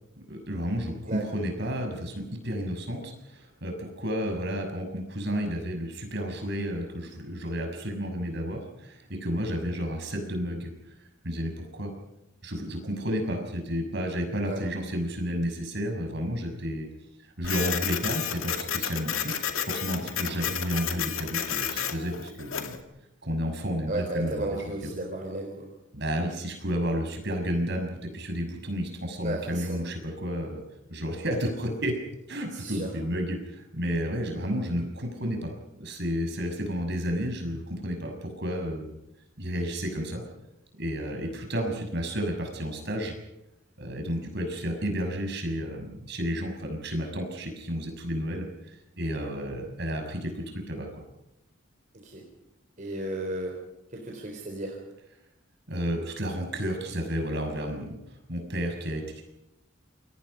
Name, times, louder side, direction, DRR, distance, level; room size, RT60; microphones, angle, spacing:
voice 1, 0.3-10.7 11.2-11.9 12.4-16.9 17.4-19.4 19.6-22.8 23.2-24.9 25.9-30.6 30.9-32.0 32.3-35.5 35.8-39.0 39.4-40.2 40.8-43.1 43.8-51.0 55.7-58.0 58.3-59.2, equal, 55° right, 4 dB, 6.2 m, -31 dB
Printer, 17.4-22.8, left 8 dB, 90° left, 2.2 m, -31 dB
voice 2, 23.9-25.7 29.2-29.8 32.5-32.9 52.0-52.2 52.8-53.5 53.9-54.8, right 2 dB, 40° right, 0 dB, 4.2 m, -34 dB
28.5 x 23.5 x 5.5 m, 0.90 s
head